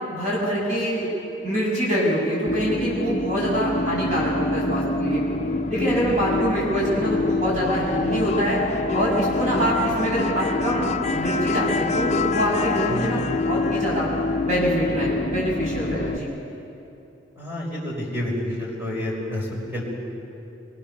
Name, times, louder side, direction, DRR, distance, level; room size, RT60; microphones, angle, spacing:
voice 1, 0.1-1.1 1.4-5.2 5.7-8.6 8.9-10.8 11.1-14.1 14.4-16.3, equal, 40° right, -5 dB, 7.4 m, -25 dB
sound 1, 2.5-16.2, left 3 dB, 35° left, 0.6 m, -26 dB
voice 2, 12.9-13.3 17.4-19.8, left 1 dB, 10° right, -3 dB, 5.5 m, -29 dB
23.0 x 22.0 x 7.0 m, 2.9 s
head